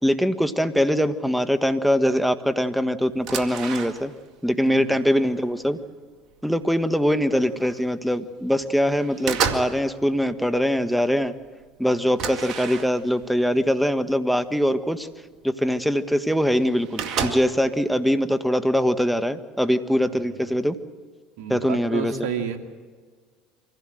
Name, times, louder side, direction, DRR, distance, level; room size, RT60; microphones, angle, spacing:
voice 1, 0.0-4.1 4.4-5.8 6.4-11.3 11.8-15.1 15.4-20.8 21.5-22.3, equal, ahead, 11 dB, 1.5 m, -22 dB
sound 1, 3.1-4.3 4.7-5.8 6.4-6.6 6.9-7.9 8.3-8.7 9.0-9.9 10.1-10.6 11.1-11.2 11.4-11.5 12.2-13.3 14.1-14.2 14.6-14.7 15.9-16.0 16.1-16.2 16.4-17.7, right 7 dB, 60° right, 2.0 m, -31 dB
voice 2, 4.7-5.0 20.1-20.6 21.4-22.6, right 7 dB, 75° right, 6 dB, 2.2 m, -32 dB
24.5 x 16.5 x 7.9 m, 1.5 s
hypercardioid pair, 80°, 0 cm